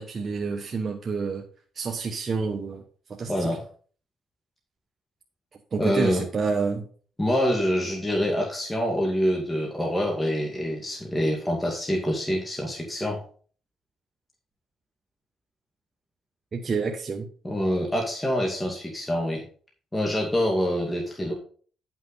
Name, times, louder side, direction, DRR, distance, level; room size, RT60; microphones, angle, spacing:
voice 1, 0.0-1.4 1.7-2.8 3.2-3.5 5.7-6.9 16.5-17.3, right 4 dB, 40° right, 2 dB, 1.2 m, -28 dB
voice 2, 3.3-3.6 5.8-6.2 7.2-13.2 17.4-19.4 19.9-21.3, equal, 15° left, -1 dB, 2.4 m, -26 dB
10.5 x 6.0 x 4.2 m, 0.43 s
cardioid pair, 90°, 0 cm